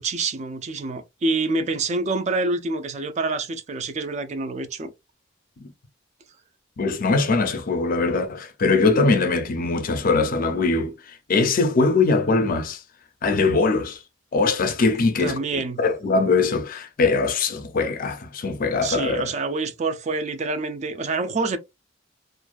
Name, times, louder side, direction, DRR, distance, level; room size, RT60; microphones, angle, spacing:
voice 1, 0.0-4.9 15.2-15.8 18.8-21.6, right 3 dB, 35° right, 0.4 m, -27 dB
voice 2, 6.8-10.9 11.3-12.8 13.2-14.0 14.3-19.3, left 3 dB, 45° left, 0.5 m, -22 dB
2.5 x 2.2 x 2.3 m
head